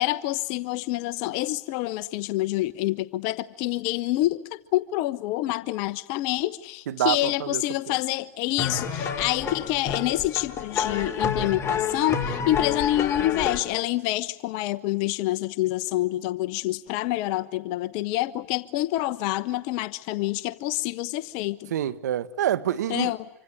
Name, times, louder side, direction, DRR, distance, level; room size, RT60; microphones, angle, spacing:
voice 1, 0.0-21.7 22.9-23.3, left 16 dB, 55° left, 1.0 m, -27 dB
voice 2, 6.9-7.6 21.7-23.1, right 11 dB, 80° right, 1.4 m, -26 dB
sound 1, 8.6-13.6, left 6 dB, 30° left, 3.6 m, -29 dB
26.5 x 25.5 x 8.8 m
hypercardioid pair, 100°, 9 cm